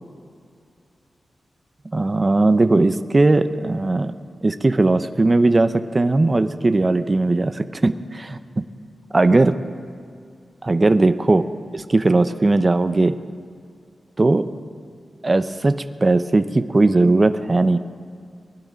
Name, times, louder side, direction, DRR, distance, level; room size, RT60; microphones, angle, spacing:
voice 1, 1.9-4.1 4.4-8.6 9.1-9.6 10.6-11.4 11.7-13.2 14.2-14.5 15.2-17.8, right 2 dB, 30° right, 11 dB, 0.6 m, -18 dB
20.0 x 11.5 x 5.1 m, 2.3 s
wide cardioid pair, 110°, 0 cm